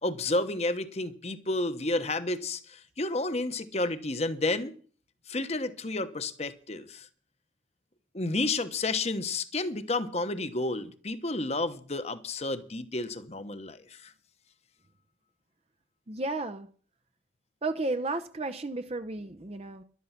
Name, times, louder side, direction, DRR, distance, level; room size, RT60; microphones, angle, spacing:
voice 1, 0.0-4.7 5.3-7.1 8.1-14.1, left 2 dB, 35° left, 1.0 m, -31 dB
voice 2, 16.1-16.7 17.6-19.8, right 2 dB, 30° right, 0.7 m, -33 dB
13.0 x 12.0 x 5.8 m
head